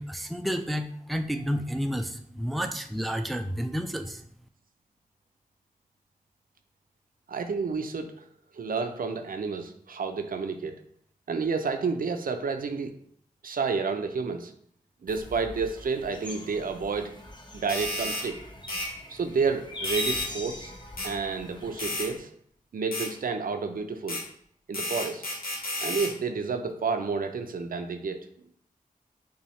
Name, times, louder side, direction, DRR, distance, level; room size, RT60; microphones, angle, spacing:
voice 1, 0.0-4.2, equal, ahead, 7 dB, 0.4 m, -30 dB
voice 2, 7.3-8.1 8.5-10.8 11.3-12.9 13.4-14.5 15.0-17.1 17.5-18.4 19.1-20.7 21.0-22.3 22.7-24.2 24.7-25.2 25.8-28.2, right 5 dB, 70° right, 6 dB, 0.5 m, -30 dB
sound 1, 15.1-22.2, left 1 dB, 30° left, 0.9 m, -40 dB
sound 2, 17.7-18.3 18.7-18.9 19.8-20.3 21.0-21.1 21.8-22.1 22.9-23.1 24.1-24.2 24.7-26.1, left 1 dB, 75° left, 1.1 m, -32 dB
5.4 x 2.3 x 3.2 m, 0.65 s
cardioid pair, 45°, 15 cm